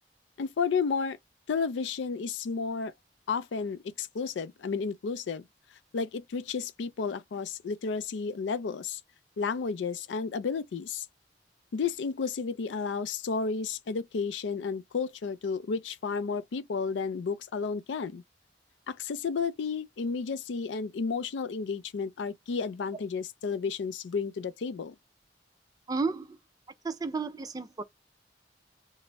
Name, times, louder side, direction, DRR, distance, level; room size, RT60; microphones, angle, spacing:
voice 1, 0.4-1.2 1.5-2.9 3.3-5.5 5.9-9.0 9.4-11.1 11.7-18.2 18.9-25.0, left 5 dB, 90° left, 0.4 m, -32 dB
voice 2, 25.9-26.3 26.8-27.8, right 4 dB, 20° right, 0.4 m, -32 dB
4.1 x 2.0 x 3.4 m
head